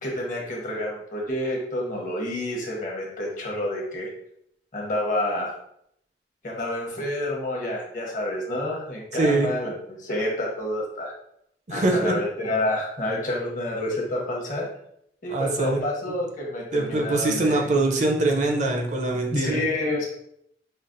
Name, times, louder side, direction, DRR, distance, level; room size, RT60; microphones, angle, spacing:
voice 1, 0.0-4.1 4.7-5.5 6.4-11.1 11.7-14.7 15.2-17.6 19.3-20.0, left 1 dB, 45° left, -2 dB, 1.0 m, -28 dB
voice 2, 9.1-9.5 11.7-12.1 15.3-15.8 16.7-19.6, right 2 dB, 40° right, 1 dB, 0.5 m, -23 dB
5.6 x 2.0 x 2.5 m, 0.73 s
head